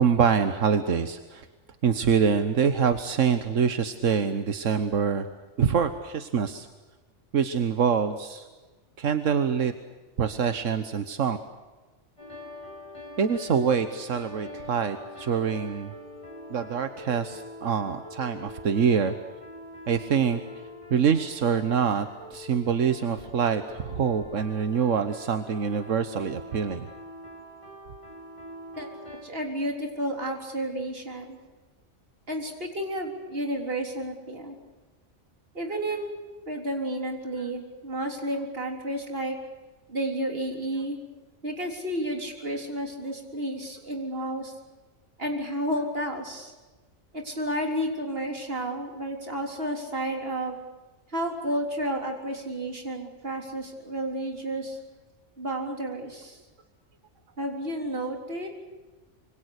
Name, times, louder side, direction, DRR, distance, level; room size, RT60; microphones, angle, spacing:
voice 1, 0.0-1.5 1.8-5.3 5.6-6.7 7.3-8.5 9.0-9.7 10.2-11.4 13.2-15.9 16.5-19.1 19.9-20.4 20.9-26.9, right 7 dB, 90° right, 9 dB, 1.5 m, -25 dB
sound 1, 12.2-29.2, left 1 dB, 25° left, 7.5 m, -44 dB
voice 2, 29.2-31.4 32.3-34.6 35.5-36.2 36.5-39.4 39.9-41.0 41.4-44.5 45.2-46.5 47.1-50.6 51.1-54.8 55.4-56.4 57.4-58.5, right 1 dB, 50° right, 2 dB, 4.0 m, -31 dB
26.5 x 25.0 x 6.7 m, 1.2 s
omnidirectional pair, 1.3 m